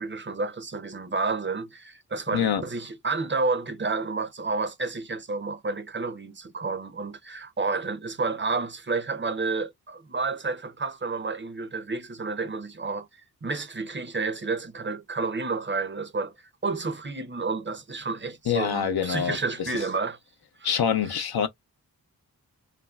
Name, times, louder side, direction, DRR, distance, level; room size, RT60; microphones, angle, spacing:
voice 1, 0.0-16.3 16.6-20.2 20.6-20.7, right 3 dB, 30° right, 0.5 m, -30 dB
voice 2, 2.3-2.6 18.5-19.4 20.6-21.5, left 8 dB, 80° left, 0.7 m, -25 dB
3.1 x 2.4 x 2.3 m
wide cardioid pair, 90°, 37 cm